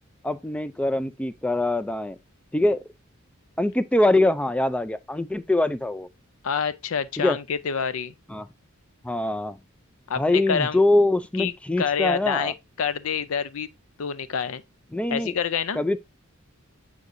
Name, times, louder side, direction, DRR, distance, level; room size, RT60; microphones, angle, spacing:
voice 1, 0.2-2.2 2.5-2.8 3.6-6.1 7.2-7.4 8.3-8.5 9.0-9.6 10.2-12.5 14.9-15.3 15.8-16.0, left 2 dB, 5° left, 0.3 m, -23 dB
voice 2, 6.4-8.1 10.1-10.8 11.4-12.5 12.8-13.7 14.0-14.6 15.1-15.8, left 6 dB, 75° left, 0.5 m, -27 dB
8.3 x 4.8 x 2.5 m
head